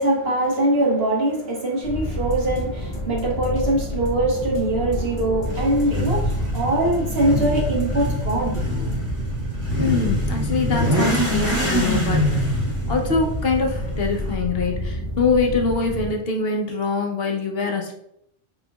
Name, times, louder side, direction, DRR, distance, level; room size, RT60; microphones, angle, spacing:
voice 1, 0.0-8.6, right 1 dB, 70° right, -3 dB, 1.4 m, -22 dB
sound 1, 1.8-16.1, equal, 20° left, 1.7 m, -29 dB
sound 2, 2.1-8.9, left 1 dB, 40° left, 1.0 m, -37 dB
Motorcycle / Accelerating revving vroom, 5.4-14.3, equal, 15° right, 1.2 m, -25 dB
voice 2, 9.8-17.9, left 4 dB, 70° left, 2 dB, 1.0 m, -24 dB
6.0 x 2.9 x 2.3 m, 0.74 s
omnidirectional pair, 1.1 m